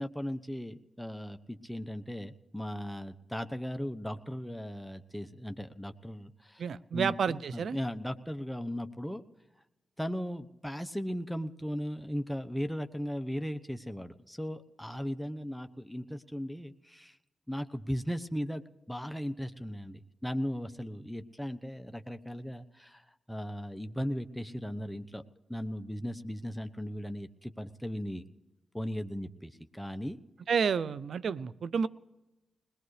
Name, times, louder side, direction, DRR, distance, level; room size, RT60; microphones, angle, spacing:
voice 1, 0.0-6.6 6.9-9.2 10.0-17.2 17.5-25.2 25.5-28.2 28.7-30.2, equal, 5° left, 7 dB, 0.9 m, -37 dB
voice 2, 6.6-7.8 30.5-31.9, right 6 dB, 75° right, 18 dB, 0.5 m, -30 dB
21.0 x 18.5 x 3.2 m, 0.99 s
supercardioid pair, 40°, 0 cm